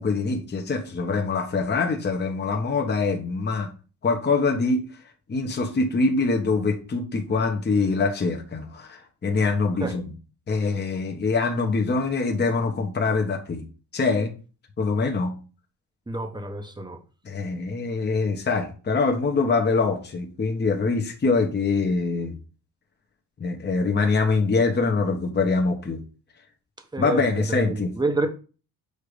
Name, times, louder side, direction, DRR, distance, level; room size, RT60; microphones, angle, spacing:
voice 1, 0.0-3.7 4.0-4.8 5.3-10.1 10.5-13.6 13.9-14.3 14.8-15.3 17.2-22.4 23.4-26.0 27.0-27.9, left 4 dB, 25° left, 2 dB, 1.0 m, -24 dB
voice 2, 16.1-17.0 26.9-28.3, right 2 dB, 10° right, 6 dB, 1.0 m, -28 dB
6.7 x 2.8 x 5.0 m, 0.35 s
cardioid pair, 105°, 40 cm